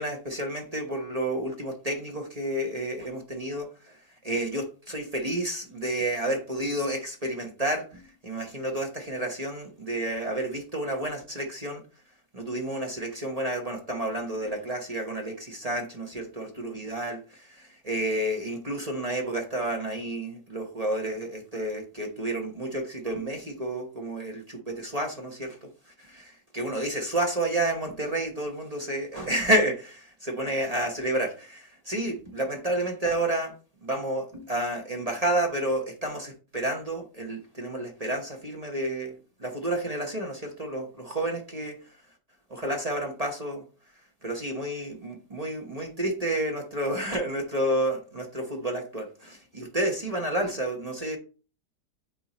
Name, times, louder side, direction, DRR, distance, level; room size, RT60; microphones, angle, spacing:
voice 1, 0.0-4.0 4.2-11.8 12.3-25.7 26.0-33.5 33.8-41.8 42.5-43.6 44.2-51.2, right 1 dB, 30° right, 0.9 m, -30 dB
8.7 x 2.9 x 4.0 m
omnidirectional pair, 1.8 m